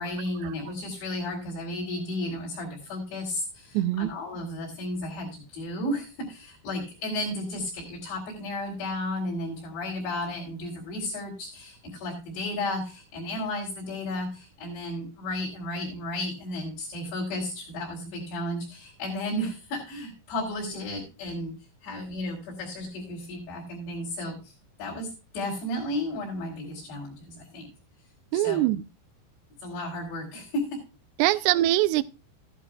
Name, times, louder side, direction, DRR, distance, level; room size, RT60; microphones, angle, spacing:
voice 1, 0.0-24.5 24.8-27.7 28.3-28.7 29.6-30.9, left 1 dB, 60° left, 6.0 m, -33 dB
voice 2, 3.7-4.1 28.3-28.8 31.2-32.0, right 15 dB, 85° right, 2.4 m, -23 dB
15.0 x 11.0 x 2.4 m
omnidirectional pair, 5.6 m